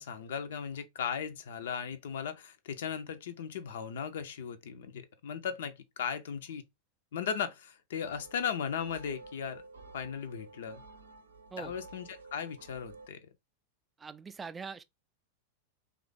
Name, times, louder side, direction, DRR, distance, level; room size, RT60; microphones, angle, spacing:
voice 1, 0.0-6.6 7.1-9.6 9.9-10.8 11.6-13.2, left 7 dB, 60° left, 0.5 m, -37 dB
sound 1, 8.0-13.1, right 3 dB, 70° right, 0.6 m, -52 dB
voice 2, 14.0-14.8, right 5 dB, 15° right, 0.3 m, -42 dB
3.1 x 2.4 x 3.7 m
figure-of-eight pair, 90°, 0 cm